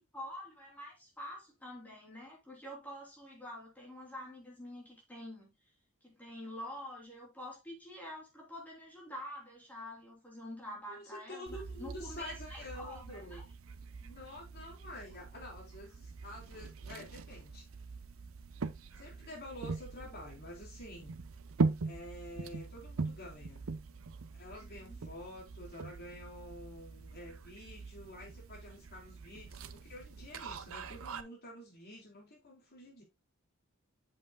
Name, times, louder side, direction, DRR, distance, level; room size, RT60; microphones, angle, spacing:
voice 1, 0.1-5.5 6.0-13.4 24.6-25.0, equal, 10° left, 3.1 m, -47 dB
voice 2, 10.9-13.5 14.0-17.6 18.9-21.2 21.8-23.7 24.3-33.0, left 1 dB, 50° left, 3.8 m, -49 dB
sound 1, 11.5-31.2, right 4 dB, 80° right, 0.7 m, -42 dB
7.8 x 7.3 x 2.2 m
head